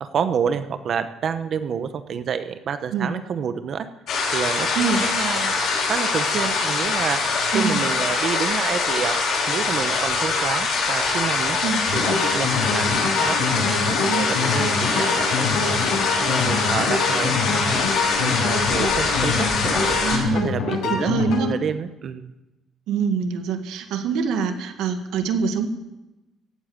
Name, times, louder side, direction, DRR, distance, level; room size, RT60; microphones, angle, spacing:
voice 1, 0.0-3.9 4.3-5.5 5.9-7.2 7.5-9.2 9.5-11.6 11.9-15.8 16.2-17.8 18.2-20.0 20.4-21.1 21.5-22.3, right 7 dB, 45° right, 10 dB, 0.9 m, -28 dB
sound 1, 4.1-20.2, left 4 dB, 65° left, 4.9 m, -23 dB
sound 2, 11.9-21.5, left 5 dB, 80° left, 6.6 m, -25 dB
voice 2, 20.0-20.5 20.9-21.5 22.9-25.7, right 5 dB, 85° right, 6 dB, 1.8 m, -24 dB
16.0 x 8.9 x 8.7 m, 0.99 s
cardioid pair, 140°, 0 cm